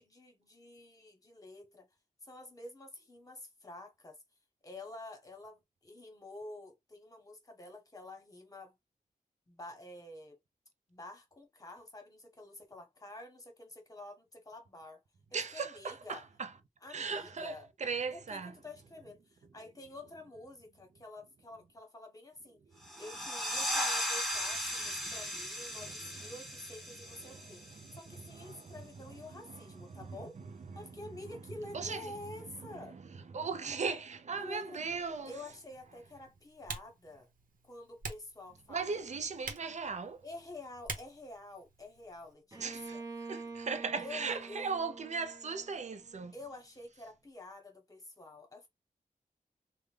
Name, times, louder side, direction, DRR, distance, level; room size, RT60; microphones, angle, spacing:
voice 1, 0.0-1.9 2.2-4.2 4.6-8.8 9.5-10.4 10.9-15.0 15.5-16.2 16.8-17.7 18.1-22.6 23.0-30.4 30.7-33.0 34.4-34.8 35.3-37.3 37.6-39.1 40.2-43.0 44.0-44.7 46.3-48.7, left 2 dB, 25° left, 1.1 m, -49 dB
voice 2, 15.3-16.5 16.9-18.5 25.0-25.2 25.8-25.9 27.2-27.4 27.8-30.9 31.7-32.1 32.5-35.3 38.7-40.2 42.6-43.0 43.3-46.3, right 5 dB, 55° right, 0.6 m, -39 dB
sound 1, 22.8-28.2, equal, ahead, 1.1 m, -37 dB
Typing, 34.8-42.3, right 4 dB, 75° right, 0.9 m, -48 dB
Bowed string instrument, 42.5-46.3, right 3 dB, 25° right, 0.8 m, -47 dB
3.6 x 2.2 x 3.2 m
wide cardioid pair, 160°, 15 cm